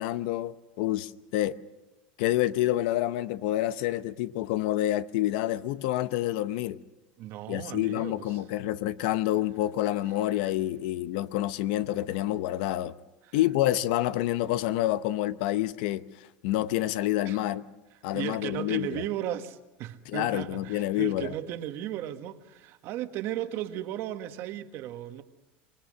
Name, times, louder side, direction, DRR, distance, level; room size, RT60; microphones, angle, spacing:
voice 1, 0.0-1.6 2.2-6.8 7.5-12.9 13.3-16.1 16.4-17.6 18.0-19.0 20.1-21.3, left 14 dB, 70° left, 0.8 m, -28 dB
voice 2, 7.2-8.4 13.2-13.4 17.2-17.4 18.1-25.2, right 12 dB, 55° right, 1.5 m, -36 dB
26.0 x 21.0 x 6.4 m
supercardioid pair, 115°, 5 cm